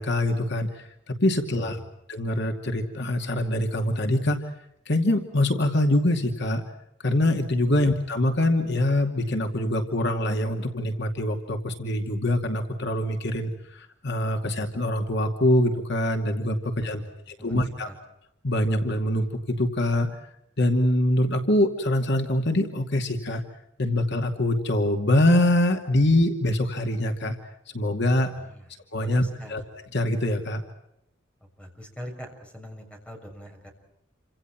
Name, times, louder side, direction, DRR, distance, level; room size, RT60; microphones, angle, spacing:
voice 1, 0.0-1.8 2.1-4.4 4.9-6.6 7.0-17.0 17.4-17.9 18.4-20.1 20.6-23.4 23.8-27.4 27.7-28.3 28.9-29.2 29.5-29.6 29.9-30.6, left 1 dB, 60° left, 4 dB, 2.5 m, -24 dB
voice 2, 1.5-1.9 7.7-7.8 16.8-17.5 17.8-18.0 28.3-28.7 29.0-29.6 31.6-33.7, equal, 5° left, 3 dB, 6.9 m, -43 dB
29.0 x 26.5 x 6.0 m, 0.81 s
head